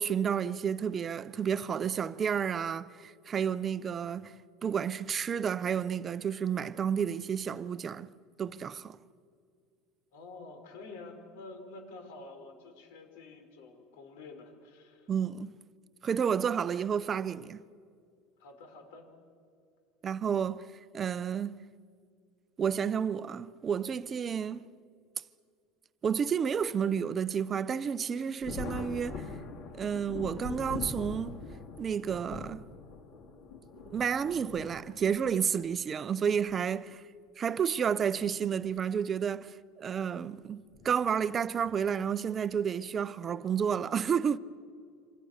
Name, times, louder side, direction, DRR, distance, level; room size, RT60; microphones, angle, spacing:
voice 1, 0.0-4.3 4.6-8.1 8.4-9.0 15.1-15.5 16.0-17.6 20.0-20.7 20.9-21.6 22.6-24.7 26.0-29.3 29.7-31.4 31.8-32.6 33.9-37.0 37.4-44.4, right 7 dB, 25° right, 0.7 m, -31 dB
voice 2, 10.1-15.1 18.4-19.1, left 3 dB, 85° left, 5.4 m, -48 dB
Thunder, 28.4-35.5 36.5-36.6 38.0-38.3 38.7-38.8 40.7-40.9 41.6-42.0, left 4 dB, 55° left, 3.2 m, -42 dB
28.0 x 26.0 x 6.6 m
supercardioid pair, 140°, 0 cm